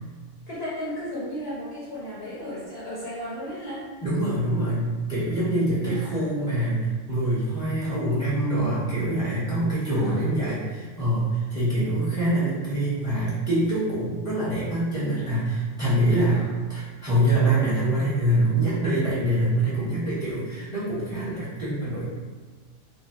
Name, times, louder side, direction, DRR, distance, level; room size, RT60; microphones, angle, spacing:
voice 1, 0.5-3.9 5.8-6.4 9.9-10.3 11.9-12.0 16.3-16.7, equal, 60° left, -9 dB, 0.8 m, -35 dB
voice 2, 4.0-16.4 16.7-22.1, right 1 dB, 5° right, -11 dB, 0.9 m, -25 dB
2.6 x 2.1 x 2.3 m, 1.4 s
omnidirectional pair, 1.4 m